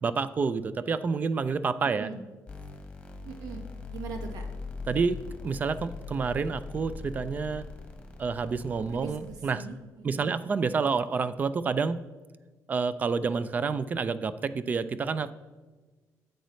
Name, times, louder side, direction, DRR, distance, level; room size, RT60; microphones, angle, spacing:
voice 1, 0.0-2.1 4.9-7.7 8.2-9.7 10.0-12.0 12.7-15.3, right 5 dB, 30° right, 14 dB, 0.3 m, -29 dB
sound 1, 2.5-9.3, left 4 dB, 15° left, 1.2 m, -41 dB
voice 2, 3.2-3.6 3.9-4.4 8.9-10.3, right 5 dB, 85° right, 5 dB, 1.2 m, -41 dB
10.5 x 8.0 x 3.1 m, 1.3 s
cardioid pair, 165°, 6 cm